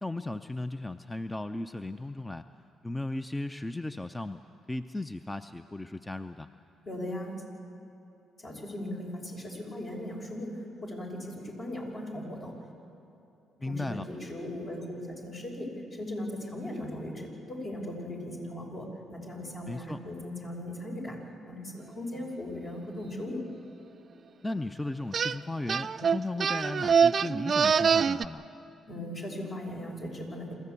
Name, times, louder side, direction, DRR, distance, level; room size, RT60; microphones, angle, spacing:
voice 1, 0.0-2.5 2.8-4.4 4.7-6.5 13.6-14.1 19.7-20.0 24.4-28.5, left 2 dB, 15° left, 11 dB, 0.6 m, -36 dB
voice 2, 6.8-7.4 8.4-12.5 13.6-21.2 21.5-23.4 28.9-30.6, left 1 dB, 50° left, -1 dB, 5.6 m, -38 dB
sound 1, 25.1-25.4 25.7-28.3, right 6 dB, 50° right, 0.4 m, -24 dB
27.0 x 14.0 x 8.3 m, 2.8 s
hypercardioid pair, 50°, 0 cm